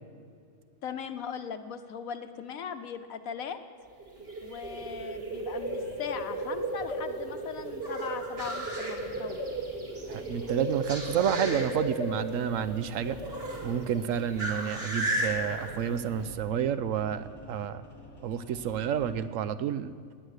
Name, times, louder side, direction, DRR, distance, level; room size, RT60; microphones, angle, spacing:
voice 1, 0.8-3.6 4.4-9.5, left 7 dB, 75° left, 9 dB, 1.3 m, -39 dB
sound 1, 3.8-16.3, right 1 dB, 45° right, 2.4 m, -34 dB
sound 2, 9.0-19.3, left 1 dB, 20° left, 1.2 m, -50 dB
voice 2, 10.1-13.2 13.6-17.8 18.2-19.9, right 9 dB, 70° right, 13 dB, 1.0 m, -30 dB
18.0 x 9.4 x 6.6 m, 2.2 s
omnidirectional pair, 1.5 m